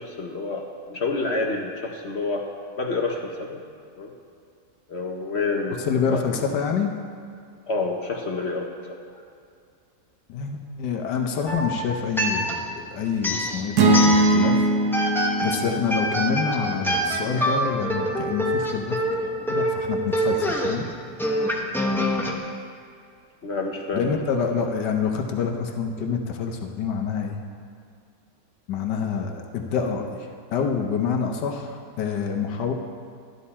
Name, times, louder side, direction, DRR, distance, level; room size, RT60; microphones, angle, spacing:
voice 1, 0.0-2.5 2.8-3.6 4.0-4.1 4.9-6.2 7.7-9.0 23.4-24.2, left 3 dB, 45° left, 1 dB, 1.1 m, -28 dB
voice 2, 5.9-6.9 10.3-14.7 15.4-19.0 19.5-20.8 23.9-27.4 28.7-32.7, left 6 dB, 85° left, 3 dB, 1.5 m, -27 dB
sound 1, 11.5-12.8 13.2-14.6 14.9-22.3, equal, ahead, 0.7 m, -26 dB
sound 2, 13.8-18.0, right 2 dB, 80° right, 1.5 m, -22 dB
13.0 x 11.0 x 4.3 m, 2.3 s
omnidirectional pair, 1.8 m